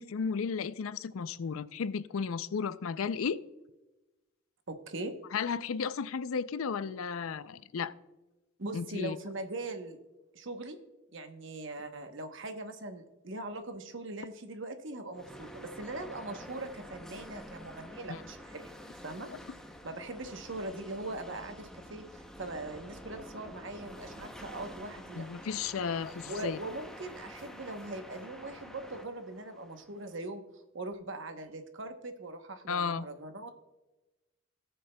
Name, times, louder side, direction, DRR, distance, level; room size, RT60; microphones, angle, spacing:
voice 1, 0.0-3.4 5.3-7.9 8.7-9.2 18.1-18.2 25.2-26.6 32.7-33.1, left 6 dB, 75° left, 0.4 m, -34 dB
voice 2, 4.7-5.1 8.6-10.0 10.3-10.8 11.1-18.7 19.0-19.3 19.8-25.2 26.3-30.4 30.7-33.5, right 2 dB, 60° right, 0.9 m, -41 dB
sound 1, 15.1-30.3, equal, 5° left, 0.6 m, -48 dB
18.0 x 6.8 x 2.2 m
head